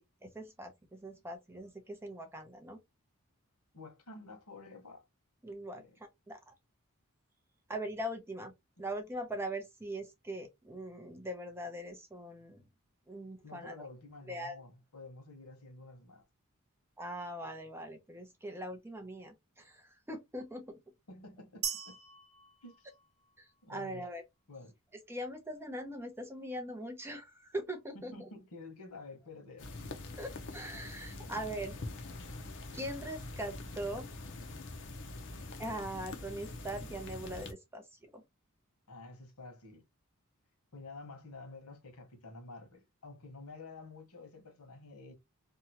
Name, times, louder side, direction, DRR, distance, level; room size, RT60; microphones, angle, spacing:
voice 1, 0.2-2.8 5.4-6.5 7.7-8.5 8.8-12.6 13.1-13.9 14.3-14.6 17.0-20.8 23.4-24.2 24.9-28.3 30.2-31.8 32.7-34.1 35.6-38.2, right 1 dB, 10° right, 0.6 m, -41 dB
voice 2, 3.7-5.1 5.7-5.9 13.4-16.2 21.1-22.0 22.6-22.9 23.6-24.0 24.5-24.7 27.9-29.7 31.2-31.3 38.9-39.8 40.7-45.1, left 3 dB, 85° left, 1.1 m, -50 dB
sound 1, 21.6-23.6, right 8 dB, 65° right, 0.7 m, -41 dB
sound 2, 29.6-37.5, left 2 dB, 55° left, 0.6 m, -44 dB
2.8 x 2.3 x 2.7 m
head